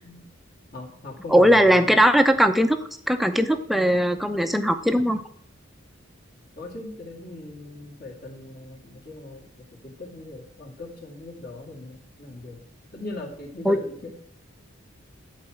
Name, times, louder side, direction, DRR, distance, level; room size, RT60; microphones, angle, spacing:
voice 1, 0.7-2.1 6.5-9.5 9.8-12.6 12.9-14.1, left 2 dB, 45° left, 0 dB, 2.3 m, -39 dB
voice 2, 1.3-2.8 3.1-5.2 13.6-13.8, equal, ahead, 8 dB, 0.6 m, -19 dB
12.0 x 4.8 x 7.6 m, 0.64 s
head